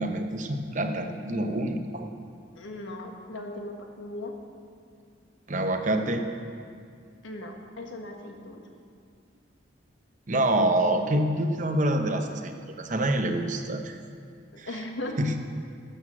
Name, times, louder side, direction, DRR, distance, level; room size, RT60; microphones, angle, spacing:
voice 1, 0.0-2.1 5.5-6.2 10.3-14.0 14.6-14.7 15.2-15.4, right 1 dB, 40° right, 5 dB, 0.8 m, -26 dB
voice 2, 2.6-4.3 7.2-8.6 12.1-12.3 14.5-15.2, left 1 dB, 80° left, 2 dB, 1.5 m, -38 dB
12.5 x 7.9 x 7.5 m, 2.3 s
head